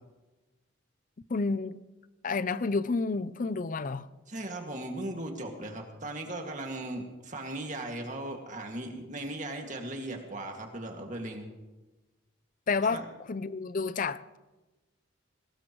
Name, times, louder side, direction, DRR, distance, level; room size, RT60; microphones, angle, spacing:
voice 1, 1.3-1.8 2.2-4.1 12.7-14.4, left 4 dB, 40° left, 0.5 m, -30 dB
voice 2, 4.3-11.5 12.9-13.0, right 1 dB, 40° right, 2.1 m, -38 dB
21.5 x 19.5 x 3.1 m
head